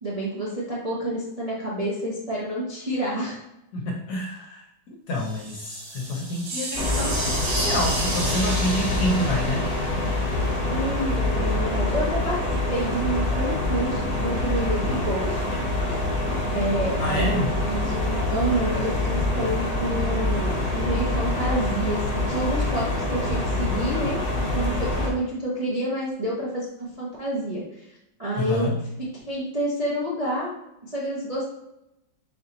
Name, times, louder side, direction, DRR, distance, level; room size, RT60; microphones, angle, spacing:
voice 1, 0.0-3.4 10.6-12.4 12.7-15.5 15.9-16.0 16.5-24.2 24.5-27.6 28.2-28.7 29.3-30.5 30.8-31.4, right 1 dB, 35° right, -7 dB, 0.5 m, -28 dB
voice 2, 3.7-4.6 5.1-9.6 17.0-17.5 28.4-28.8, left 1 dB, 65° left, 0 dB, 1.1 m, -28 dB
sound 1, 5.1-11.0, right 2 dB, 80° right, 1.8 m, -32 dB
sound 2, 6.7-25.1, left 2 dB, 35° left, 0.6 m, -25 dB
4.1 x 2.8 x 3.8 m, 0.85 s
omnidirectional pair, 2.1 m